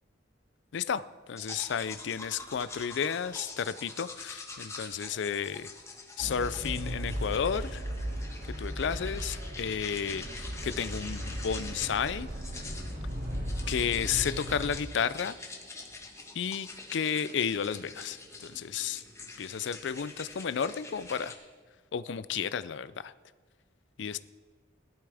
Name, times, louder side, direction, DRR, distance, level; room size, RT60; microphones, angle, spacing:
voice 1, 0.7-5.7 6.2-7.8 8.6-12.3 13.7-15.4 16.3-19.0 19.4-21.4 21.9-23.1 24.0-24.2, left 7 dB, 65° left, 15 dB, 0.4 m, -32 dB
sound 1, 1.4-21.3, left 3 dB, 15° left, 1.2 m, -45 dB
sound 2, 6.2-14.8, equal, 50° right, 2.5 m, -37 dB
17.0 x 12.0 x 3.5 m, 1.5 s
head